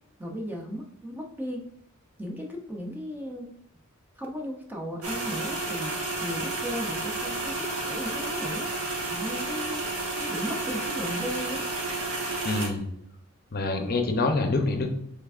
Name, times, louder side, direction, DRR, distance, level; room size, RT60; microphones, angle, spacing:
voice 1, 0.2-1.6 2.2-3.5 4.2-8.7 9.1-9.8 10.2-11.7, equal, 10° right, 0 dB, 0.5 m, -36 dB
sound 1, 5.0-12.7, right 2 dB, 80° right, 1.2 m, -31 dB
voice 2, 12.4-12.9 13.5-14.9, left 3 dB, 45° left, 5 dB, 0.6 m, -26 dB
5.6 x 3.4 x 2.4 m, 0.72 s
head